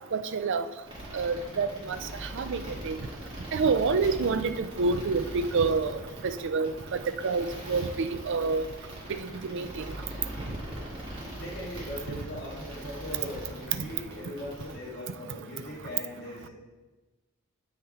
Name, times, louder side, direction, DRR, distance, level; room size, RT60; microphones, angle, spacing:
voice 1, 0.1-0.6 1.1-2.0 2.4-3.0 3.5-5.9 6.2-6.7 7.2-8.6 9.4-9.7, right 4 dB, 60° right, 10 dB, 0.5 m, -27 dB
sound 1, 0.8-14.7, right 1 dB, 25° right, 2.3 m, -41 dB
voice 2, 11.4-16.5, left 1 dB, 55° left, -6 dB, 2.0 m, -39 dB
8.1 x 5.8 x 4.2 m, 1.2 s
head